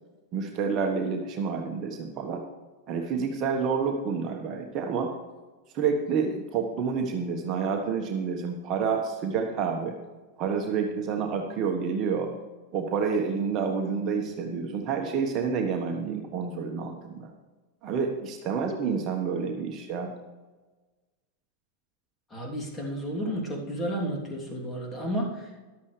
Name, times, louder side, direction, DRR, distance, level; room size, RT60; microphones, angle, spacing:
voice 1, 0.3-2.4 2.9-5.1 5.7-10.0 10.4-12.3 12.7-17.3 17.8-20.1, right 5 dB, 35° right, 3 dB, 1.4 m, -29 dB
voice 2, 22.3-25.6, equal, 15° left, -2 dB, 3.1 m, -32 dB
14.5 x 11.5 x 3.3 m, 1.3 s
figure-of-eight pair, 90°, 0 cm